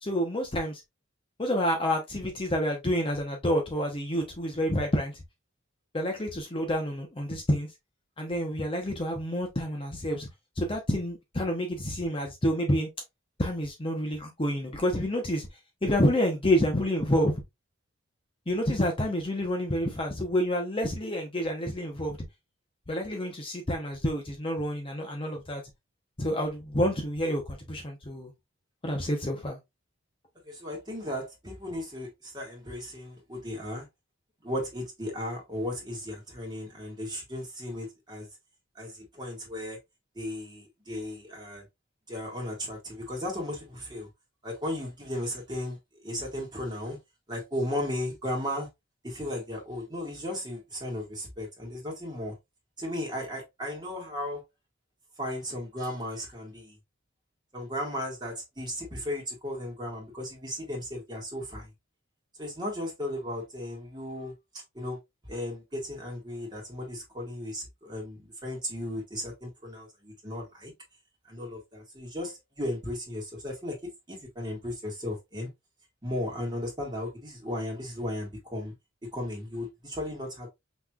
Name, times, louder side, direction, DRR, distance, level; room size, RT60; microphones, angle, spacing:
voice 1, 0.0-0.8 1.4-5.2 5.9-7.7 8.2-10.3 10.6-12.9 13.4-15.5 15.8-17.4 18.5-22.2 22.9-25.6 26.2-28.3 28.8-29.6, equal, 25° left, 0.8 m, -28 dB
voice 2, 30.5-33.9 34.4-38.3 38.8-39.8 40.2-41.6 42.1-44.1 44.4-45.8 46.0-47.0 47.3-48.7 49.0-52.3 52.8-54.4 55.2-56.8 57.5-61.7 62.4-64.3 64.8-65.0 65.3-70.7 71.3-75.5 76.0-78.7 79.0-80.5, left 1 dB, 20° right, 1.8 m, -35 dB
5.7 x 3.1 x 2.3 m
head